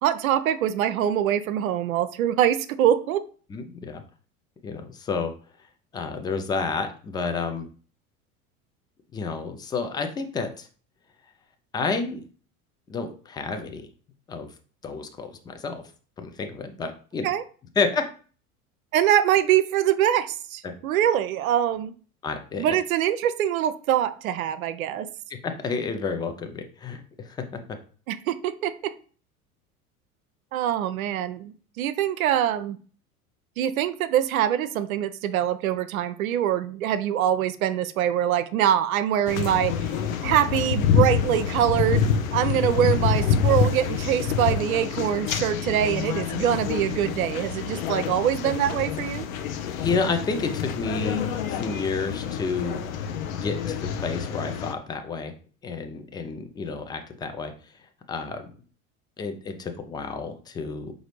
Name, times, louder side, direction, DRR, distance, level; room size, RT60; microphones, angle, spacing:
voice 1, 0.0-3.2 17.2-17.4 18.9-21.9 22.6-25.1 28.1-28.9 30.5-32.8 33.6-39.9 40.2-42.1 42.3-49.3, right 10 dB, 70° right, 13 dB, 0.5 m, -24 dB
voice 2, 3.5-4.0 4.6-5.3 5.6-5.7 5.9-7.7 9.1-10.7 11.7-12.2 12.9-13.9 14.3-14.5 14.8-15.8 16.2-17.3 17.8-18.0 20.6-20.7 22.2-22.8 25.3-27.6 49.8-52.8 53.3-55.3 55.6-57.7 58.1-58.5 59.2-60.9, left 4 dB, 10° left, 6 dB, 0.4 m, -30 dB
sound 1, 39.3-54.7, left 7 dB, 65° left, 0.6 m, -27 dB
4.8 x 2.6 x 3.1 m, 0.40 s
figure-of-eight pair, 80°, 44 cm